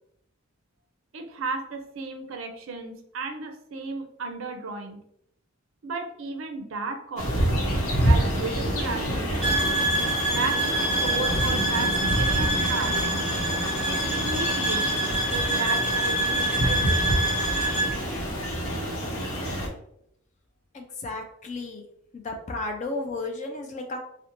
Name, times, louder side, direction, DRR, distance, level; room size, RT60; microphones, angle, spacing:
voice 1, 1.1-5.0 5.8-7.5 8.0-9.5 10.3-13.1 13.9-14.9 15.3-17.3, right 3 dB, 65° right, 5 dB, 0.4 m, -34 dB
sound 1, 7.2-19.7, equal, 85° left, 0.7 m, -27 dB
sound 2, 9.4-17.9, right 2 dB, 5° left, 0.9 m, -26 dB
voice 2, 20.7-21.8 22.1-24.0, left 2 dB, 35° left, 4 dB, 0.3 m, -33 dB
2.5 x 2.1 x 2.9 m, 0.74 s
head